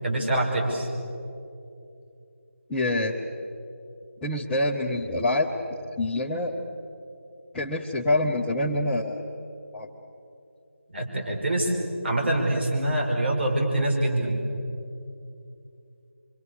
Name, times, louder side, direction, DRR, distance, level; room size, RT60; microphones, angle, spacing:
voice 1, 0.0-0.9 10.9-11.7 12.0-14.4, right 1 dB, 55° right, 0 dB, 6.1 m, -25 dB
voice 2, 2.7-3.1 4.2-6.6 7.5-9.4 9.7-9.9, left 1 dB, 5° left, -7 dB, 0.6 m, -26 dB
26.5 x 25.0 x 6.8 m, 2.7 s
figure-of-eight pair, 165°, 7 cm